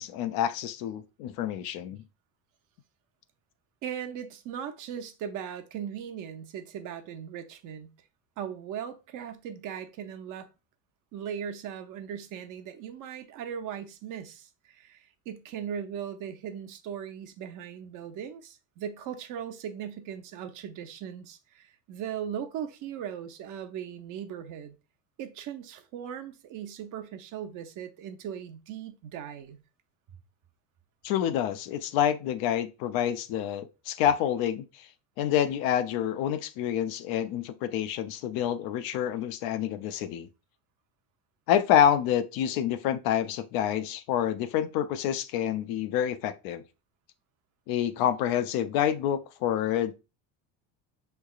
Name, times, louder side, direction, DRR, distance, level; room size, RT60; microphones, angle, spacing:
voice 1, 0.0-2.0 31.0-34.9 35.2-40.3 41.5-46.6 47.7-49.9, left 10 dB, 70° left, 0.6 m, -27 dB
voice 2, 3.8-7.9 8.4-10.5 11.1-24.7 25.2-29.6, right 8 dB, 55° right, 0.8 m, -38 dB
5.5 x 3.3 x 2.4 m
supercardioid pair, 115°, 38 cm